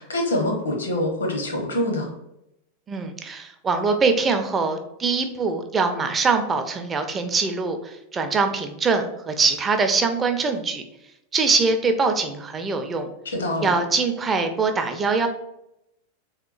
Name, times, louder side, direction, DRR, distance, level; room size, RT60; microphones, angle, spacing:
voice 1, 0.0-2.1 13.3-13.7, left 1 dB, 70° left, 3 dB, 0.8 m, -25 dB
voice 2, 2.9-10.8 11.3-13.1 13.6-15.3, right 4 dB, 20° right, 5 dB, 0.4 m, -23 dB
3.5 x 2.9 x 2.4 m, 0.83 s
figure-of-eight pair, 90°, 0 cm